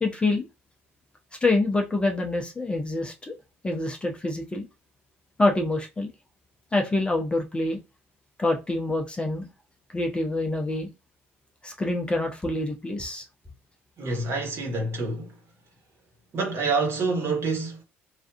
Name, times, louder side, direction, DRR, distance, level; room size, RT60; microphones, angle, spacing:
voice 1, 0.0-0.4 1.4-3.3 3.6-4.7 5.4-6.1 6.7-7.8 8.4-9.5 9.9-10.9 11.6-13.2, left 2 dB, 15° left, 0.6 m, -26 dB
voice 2, 14.0-15.4 16.3-17.8, right 3 dB, 40° right, 1.2 m, -27 dB
3.2 x 2.4 x 2.4 m
figure-of-eight pair, 55°, 6 cm